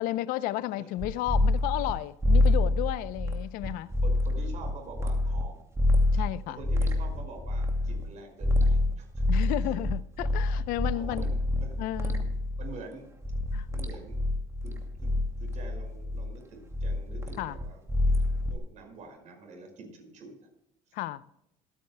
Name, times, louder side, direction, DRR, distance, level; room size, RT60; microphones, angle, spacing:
voice 1, 0.0-3.9 6.1-6.6 9.3-11.3 11.8-12.3 13.5-13.7 17.4-17.6 20.9-21.2, left 15 dB, 80° left, 0.6 m, -32 dB
sound 1, 1.0-1.9 2.2-5.4 5.8-8.0 8.4-12.8 13.2-16.3 16.7-18.6, left 2 dB, 20° right, 2.4 m, -27 dB
voice 2, 4.0-5.6 6.5-9.2 9.6-9.8 10.2-10.4 10.9-11.8 12.6-13.1 13.7-14.2 14.6-17.8 18.1-20.4, right 3 dB, 55° right, 5.3 m, -46 dB
27.0 x 9.0 x 2.2 m
cardioid pair, 95°, 14 cm